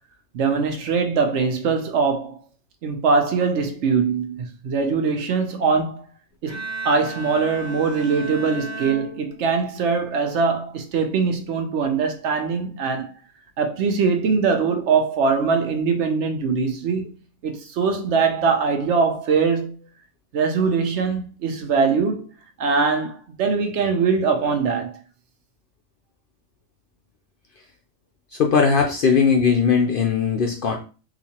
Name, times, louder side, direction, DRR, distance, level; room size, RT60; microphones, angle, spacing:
voice 1, 0.3-2.4 2.8-6.0 6.4-6.6 6.8-13.1 13.6-17.1 17.4-19.8 20.3-22.3 22.6-25.0, right 5 dB, 70° right, 0.9 m, -22 dB
Bowed string instrument, 6.5-9.8, right 3 dB, 20° right, 0.5 m, -34 dB
voice 2, 28.3-30.7, left 6 dB, 65° left, 0.5 m, -19 dB
3.9 x 2.5 x 2.8 m
omnidirectional pair, 1.3 m